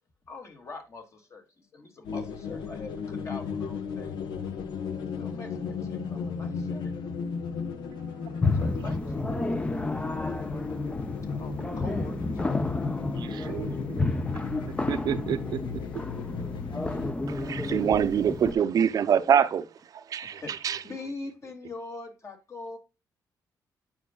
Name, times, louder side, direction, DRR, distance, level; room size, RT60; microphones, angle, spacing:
voice 1, 0.3-4.2 5.1-6.9 8.3-9.3 11.2-12.7 13.4-13.8 20.3-20.5 20.8-22.8, left 3 dB, 40° left, 2.3 m, -43 dB
sound 1, 2.0-17.1, left 5 dB, 80° left, 1.3 m, -35 dB
voice 2, 7.7-8.4 13.1-14.0 14.6-15.6 15.9-16.0 20.3-20.4, right 9 dB, 85° right, 0.9 m, -35 dB
sound 2, 8.4-18.5, left 2 dB, 15° left, 0.6 m, -31 dB
voice 3, 17.3-19.7 20.1-20.8, right 8 dB, 55° right, 0.7 m, -24 dB
9.0 x 6.0 x 2.3 m
cardioid pair, 115°, 7 cm